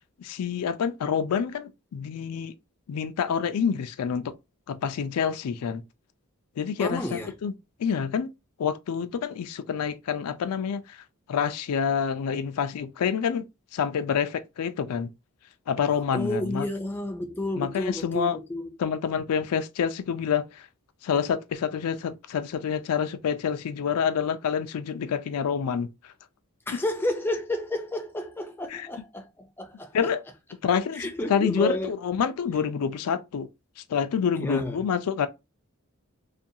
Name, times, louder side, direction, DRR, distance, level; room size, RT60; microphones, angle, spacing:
voice 1, 0.2-2.5 2.9-4.3 4.7-5.8 6.6-7.5 7.8-8.3 8.6-11.0 11.3-13.4 13.7-15.1 15.7-16.7 17.6-18.4 18.8-20.7 21.0-26.1 26.7-26.8 28.7-28.9 29.9-30.2 30.6-33.5 33.8-35.3, left 7 dB, 90° left, 0.4 m, -27 dB
voice 2, 6.8-7.3 16.1-18.7 26.7-29.9 30.9-31.9 34.3-34.8, left 1 dB, 10° left, 0.3 m, -31 dB
2.5 x 2.2 x 2.7 m
head